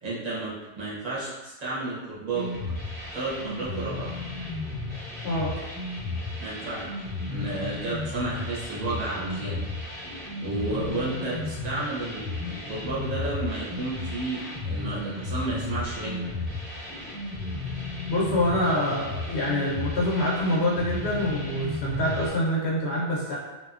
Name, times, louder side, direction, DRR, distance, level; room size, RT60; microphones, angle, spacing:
voice 1, 0.0-2.5 3.1-4.1 6.4-6.9 7.3-9.6 10.0-16.3, right 2 dB, 40° right, -8 dB, 0.7 m, -32 dB
sound 1, 2.3-22.3, left 3 dB, 10° left, 0.7 m, -34 dB
voice 2, 5.2-5.6 18.1-23.4, left 1 dB, 65° left, -6 dB, 0.8 m, -26 dB
2.7 x 2.1 x 2.3 m, 1.1 s
omnidirectional pair, 1.3 m